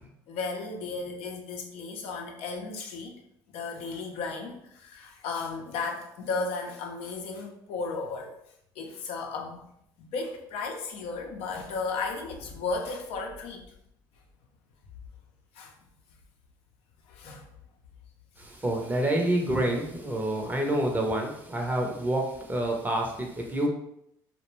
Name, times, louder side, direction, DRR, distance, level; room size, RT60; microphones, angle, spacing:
voice 1, 0.0-3.1 3.5-8.3 8.8-9.6 10.0-13.6 15.5-15.7 17.1-17.5, left 4 dB, 65° left, 1 dB, 0.5 m, -34 dB
voice 2, 18.4-23.7, right 1 dB, 15° right, 1 dB, 0.6 m, -28 dB
2.3 x 2.1 x 3.1 m, 0.76 s
hypercardioid pair, 70°, 11 cm